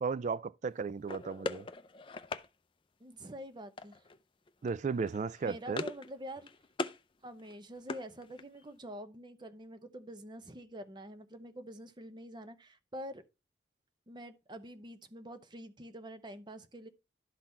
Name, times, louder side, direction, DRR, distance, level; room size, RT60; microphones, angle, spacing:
voice 1, 0.0-1.7 4.6-5.8, right 5 dB, 40° right, 0.3 m, -35 dB
sound 1, 1.1-2.5 3.8-4.2 4.5-4.7 5.0-6.1 6.4-7.0 7.4-8.6, left 3 dB, 30° left, 0.5 m, -40 dB
voice 2, 3.0-4.1 5.4-6.5 7.2-13.2 14.1-16.9, equal, 25° right, 0.7 m, -46 dB
11.5 x 4.0 x 4.2 m
head